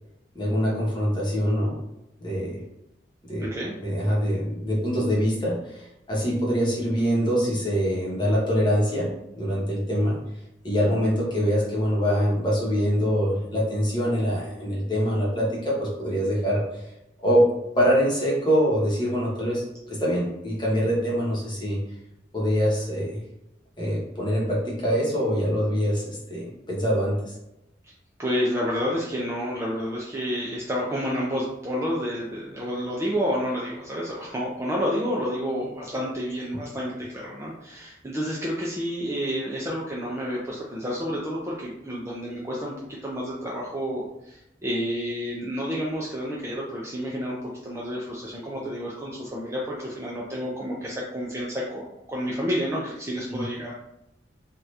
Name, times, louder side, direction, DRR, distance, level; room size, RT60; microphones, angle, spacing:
voice 1, 0.3-1.8 2.2-2.6 3.2-3.5 3.8-10.2 10.6-16.8 17.2-21.8 22.3-23.2 23.8-27.2 53.3-53.4, equal, 25° left, -5 dB, 1.0 m, -24 dB
voice 2, 3.4-3.7 28.2-47.4 47.6-53.7, equal, 15° right, -4 dB, 0.4 m, -30 dB
2.8 x 2.4 x 3.2 m, 0.85 s
head